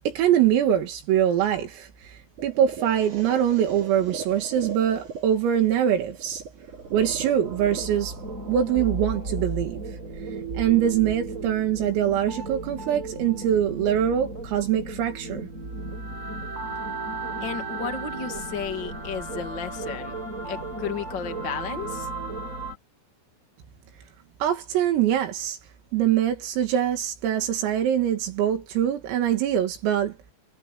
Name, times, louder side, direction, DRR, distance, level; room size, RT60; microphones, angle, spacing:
voice 1, 0.1-6.4 6.9-8.1 8.5-9.8 10.6-15.5 24.4-25.6 25.9-30.2, right 10 dB, 80° right, 5.3 m, -23 dB
sound 1, 2.4-10.4, right 5 dB, 40° right, 4.4 m, -40 dB
sound 2, 6.7-22.8, right 2 dB, 15° right, 5.8 m, -34 dB
voice 2, 17.4-20.2 20.4-22.1, left 7 dB, 40° left, 1.7 m, -33 dB
omnidirectional pair, 5.9 m